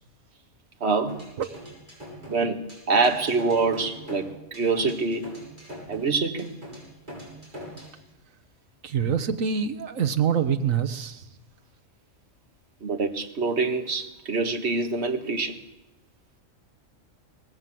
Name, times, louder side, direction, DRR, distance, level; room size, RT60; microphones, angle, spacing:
voice 1, 0.8-1.2 2.3-5.3 5.9-6.5 12.8-15.6, right 4 dB, 55° right, 5 dB, 1.9 m, -25 dB
sound 1, 1.1-8.0, equal, 35° right, 7.2 m, -42 dB
voice 2, 8.8-11.2, right 7 dB, 80° right, 8 dB, 1.5 m, -25 dB
23.5 x 19.0 x 7.7 m, 0.92 s
omnidirectional pair, 1.4 m